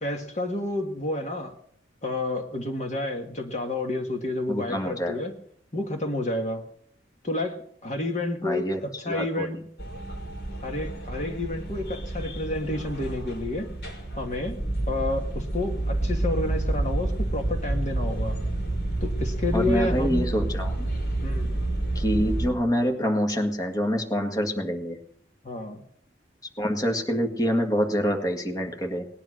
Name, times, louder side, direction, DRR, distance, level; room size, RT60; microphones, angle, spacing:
voice 1, 0.0-1.5 2.0-5.4 5.7-6.6 7.2-9.6 10.6-13.7 14.2-14.6 14.9-18.4 19.0-20.3 21.2-21.6 25.4-25.8, left 2 dB, 40° left, 3 dB, 1.7 m, -30 dB
voice 2, 4.5-5.2 8.4-8.8 9.1-9.5 19.5-20.9 22.0-25.0 26.6-29.1, equal, 20° left, 2 dB, 1.8 m, -26 dB
sound 1, 9.8-22.5, right 1 dB, 65° left, 5.5 m, -29 dB
19.5 x 10.5 x 6.4 m, 0.64 s
head